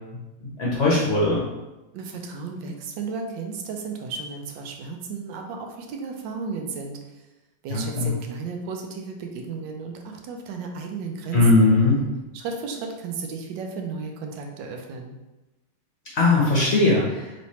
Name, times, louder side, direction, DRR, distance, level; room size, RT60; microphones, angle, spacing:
voice 1, 0.4-1.4 7.7-8.1 11.3-12.0 16.2-17.3, left 2 dB, 55° left, -5 dB, 0.8 m, -19 dB
voice 2, 1.9-7.0 7.6-11.7 12.3-15.2, right 4 dB, 90° right, 3 dB, 1.3 m, -34 dB
3.2 x 3.1 x 4.1 m, 1.0 s
omnidirectional pair, 1.9 m